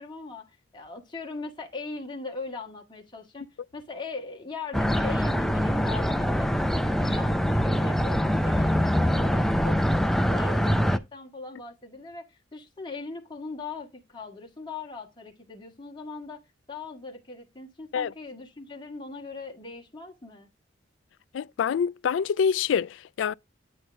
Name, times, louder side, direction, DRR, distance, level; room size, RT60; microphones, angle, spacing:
voice 1, 0.0-16.4 16.7-20.5, left 4 dB, 25° left, 1.9 m, -40 dB
sound 1, 4.7-11.0, equal, ahead, 0.4 m, -24 dB
voice 2, 21.3-23.3, left 7 dB, 75° left, 0.3 m, -26 dB
9.2 x 4.3 x 3.5 m
head